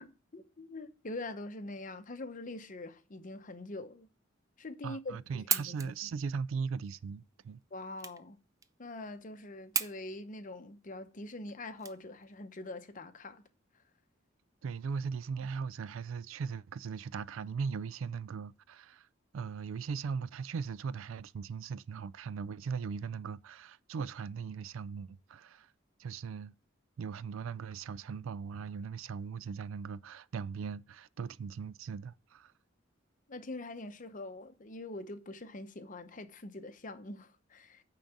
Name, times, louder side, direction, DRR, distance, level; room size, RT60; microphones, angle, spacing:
voice 1, 0.0-4.1 4.6-5.9 7.7-8.4 8.8-13.5 33.3-37.8, left 2 dB, 40° left, 0.8 m, -44 dB
voice 2, 4.8-7.6 14.6-19.1 19.3-25.7 26.0-26.5 27.0-32.5, right 5 dB, 90° right, 0.4 m, -39 dB
sound 1, 5.2-12.5, right 6 dB, 15° right, 0.4 m, -39 dB
9.0 x 3.9 x 5.8 m
head